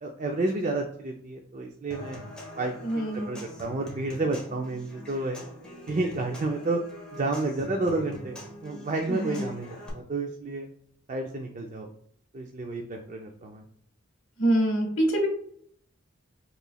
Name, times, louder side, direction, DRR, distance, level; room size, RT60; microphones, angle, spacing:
voice 1, 0.0-2.2 2.6-2.7 3.3-5.4 5.9-6.8 7.1-8.4 8.6-10.7 11.1-11.9 12.3-13.6, right 2 dB, 35° right, 2 dB, 0.4 m, -30 dB
Human voice / Acoustic guitar / Percussion, 1.9-9.9, equal, 5° left, 1.1 m, -44 dB
voice 2, 2.8-3.4 9.1-9.6 14.4-15.3, right 1 dB, 70° left, 2 dB, 1.3 m, -25 dB
5.4 x 3.1 x 2.3 m, 0.63 s
head